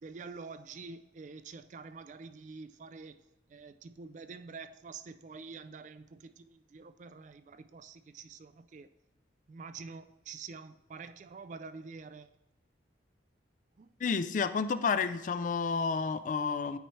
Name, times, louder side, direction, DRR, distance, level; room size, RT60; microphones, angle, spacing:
voice 1, 0.0-3.2 3.5-8.9 9.5-12.3 13.8-13.9, right 4 dB, 40° right, 0.3 m, -47 dB
voice 2, 14.0-16.8, left 5 dB, 45° left, 0.3 m, -30 dB
9.0 x 4.7 x 3.1 m
head